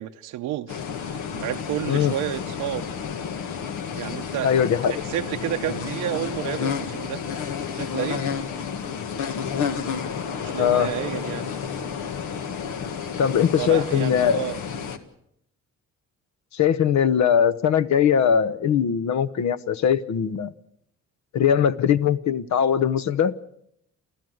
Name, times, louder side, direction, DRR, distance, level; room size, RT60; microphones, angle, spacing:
voice 1, 0.0-2.9 3.9-4.5 4.9-7.2 7.7-8.3 10.4-11.5 13.6-14.6, right 13 dB, 90° right, 0.8 m, -30 dB
sound 1, 0.7-15.0, left 7 dB, 80° left, 1.7 m, -31 dB
voice 2, 4.4-5.0 10.6-10.9 13.2-14.5 16.5-20.5 21.3-23.3, left 8 dB, 65° left, 1.1 m, -21 dB
29.0 x 13.5 x 7.9 m
cardioid pair, 90°, 30 cm